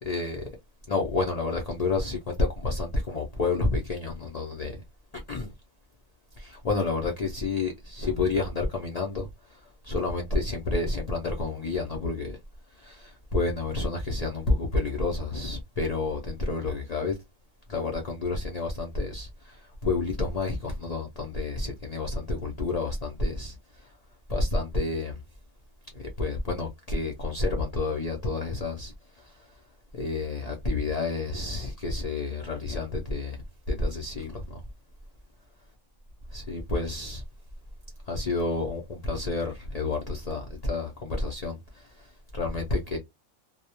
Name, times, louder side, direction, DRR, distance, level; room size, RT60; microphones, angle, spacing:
voice 1, 0.0-0.5 0.9-4.8 5.3-5.5 6.4-12.4 12.7-17.2 17.7-23.9 24.3-25.2 25.9-29.5 29.9-33.4 33.7-34.6 36.3-37.2 38.1-43.0, left 3 dB, 70° left, 0.3 m, -30 dB
2.3 x 2.1 x 2.8 m
omnidirectional pair, 1.4 m